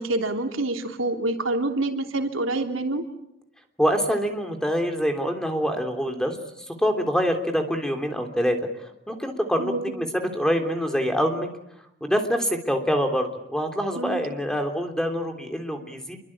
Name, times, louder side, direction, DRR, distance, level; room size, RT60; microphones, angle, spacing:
voice 1, 0.0-3.0 9.6-9.9 14.0-14.2, right 2 dB, 85° right, 4 dB, 3.3 m, -27 dB
voice 2, 3.8-6.4 6.8-8.6 9.1-11.5 12.0-16.2, equal, 5° left, 5 dB, 3.2 m, -25 dB
28.5 x 24.0 x 8.8 m, 0.83 s
head